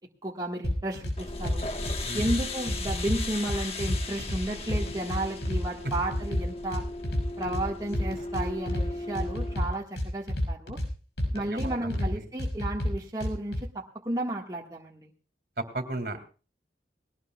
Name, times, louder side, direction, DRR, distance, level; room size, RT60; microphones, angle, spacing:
voice 1, 0.2-1.7 2.1-6.9 7.4-10.8 11.3-15.1, right 1 dB, 20° right, -2 dB, 1.6 m, -33 dB
sound 1, 0.6-1.1 1.4-2.4 2.7-4.4 4.7-5.6 5.9-7.6 7.9-8.9 9.1-10.9 11.2-12.1 12.4-13.6, left 1 dB, 80° left, 6.5 m, -29 dB
sound 2, 1.2-9.7, left 2 dB, 35° left, 1.3 m, -37 dB
voice 2, 11.5-12.2 15.7-16.2, right 2 dB, 55° right, 8 dB, 2.3 m, -35 dB
20.0 x 18.5 x 2.3 m, 0.37 s
head